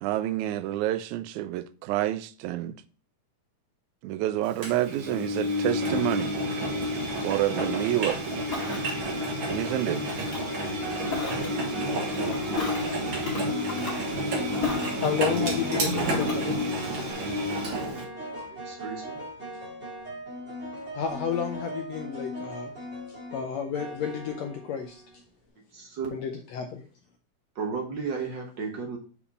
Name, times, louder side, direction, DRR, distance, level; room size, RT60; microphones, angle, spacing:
voice 1, 0.0-2.8 4.0-6.4 7.2-8.2 9.5-10.0, right 14 dB, 80° right, 1.9 m, -28 dB
Engine, 4.6-18.0, equal, 45° right, 2.0 m, -30 dB
Ocean, 8.1-17.1, left 3 dB, 40° left, 3.0 m, -38 dB
sound 1, 10.4-25.2, equal, 25° right, 2.4 m, -38 dB
voice 2, 15.0-16.6 20.9-22.7 23.3-25.0 26.1-26.8, left 7 dB, 75° left, 1.7 m, -31 dB
voice 3, 18.4-19.1 25.7-26.1 27.6-29.0, right 5 dB, 65° right, 1.1 m, -34 dB
7.1 x 4.6 x 4.2 m
omnidirectional pair, 3.6 m